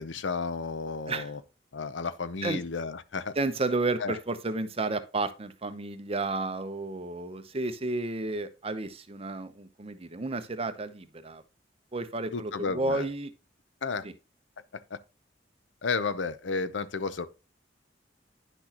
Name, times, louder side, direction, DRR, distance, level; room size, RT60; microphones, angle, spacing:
voice 1, 0.0-1.4 1.7-3.3 4.0-4.2 12.3-13.1 13.8-14.1 14.7-15.0 15.8-17.3, left 4 dB, 85° left, 0.7 m, -32 dB
voice 2, 3.4-11.4 11.9-13.3 14.0-14.1, right 2 dB, 35° right, 0.8 m, -32 dB
10.0 x 6.1 x 2.9 m
head